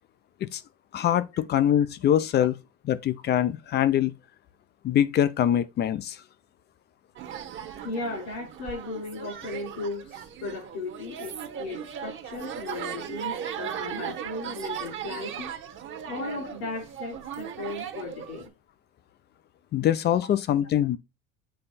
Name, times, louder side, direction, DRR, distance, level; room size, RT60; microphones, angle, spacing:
voice 1, 0.9-2.5 2.9-4.1 4.8-6.2 19.7-21.0, left 10 dB, 30° left, 0.5 m, -23 dB
sound 1, 7.2-18.5, right 9 dB, 35° right, 1.1 m, -37 dB
voice 2, 7.8-15.5 16.0-18.5, left 3 dB, 80° left, 3.9 m, -36 dB
7.7 x 3.3 x 4.0 m
supercardioid pair, 115°, 33 cm